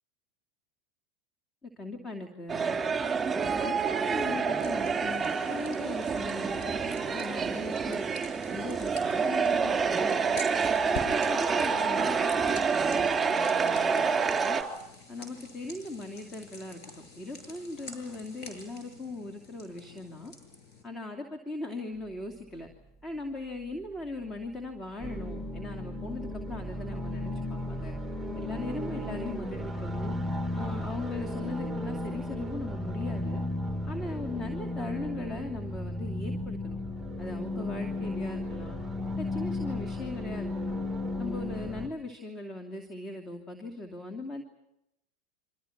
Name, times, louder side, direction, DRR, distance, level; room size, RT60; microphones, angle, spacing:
voice 1, 1.6-2.8 3.3-8.1 8.5-10.4 10.8-14.6 15.1-20.3 20.8-22.7 23.0-27.9 28.4-30.2 30.5-33.4 33.9-36.8 37.2-38.8 39.2-40.8 41.2-44.4, left 2 dB, 20° left, 4 dB, 2.7 m, -39 dB
sound 1, 2.5-14.6, right 5 dB, 20° right, 3.2 m, -28 dB
sound 2, 4.5-20.8, left 3 dB, 55° left, 7.7 m, -47 dB
sound 3, 25.0-41.9, left 1 dB, ahead, 1.9 m, -34 dB
28.5 x 25.5 x 6.0 m, 0.85 s
hypercardioid pair, 95°, 0 cm